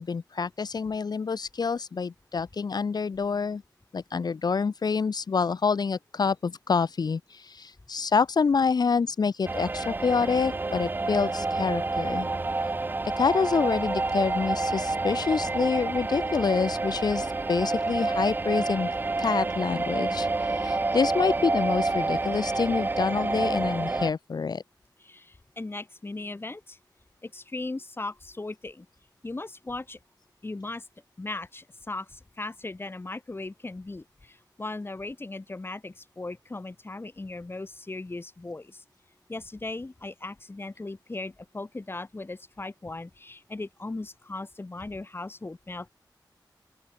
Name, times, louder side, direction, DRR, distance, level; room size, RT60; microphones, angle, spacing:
voice 1, 0.0-3.6 3.9-12.3 13.2-18.9 19.2-24.6, left 5 dB, 60° left, 1.1 m, -27 dB
sound 1, 9.4-24.1, right 3 dB, 25° right, 0.4 m, -28 dB
voice 2, 25.0-26.8 27.2-28.9 29.2-30.0 30.4-30.9 31.2-38.8 39.3-45.9, left 2 dB, 30° left, 4.0 m, -38 dB
open air
wide cardioid pair, 105°, 8 cm